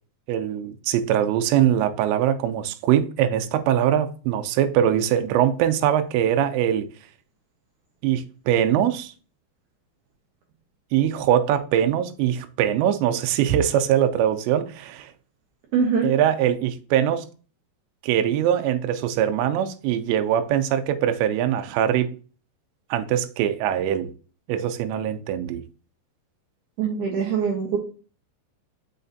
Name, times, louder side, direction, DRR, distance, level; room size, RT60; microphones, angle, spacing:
voice 1, 0.3-6.9 8.0-9.1 10.9-15.1 16.0-17.3 18.0-22.1 22.9-24.1 24.5-25.6, right 10 dB, 85° right, 2.8 m, -22 dB
voice 2, 15.7-16.1 26.8-27.8, right 6 dB, 70° right, 2.0 m, -23 dB
6.4 x 5.8 x 2.7 m
omnidirectional pair, 5.0 m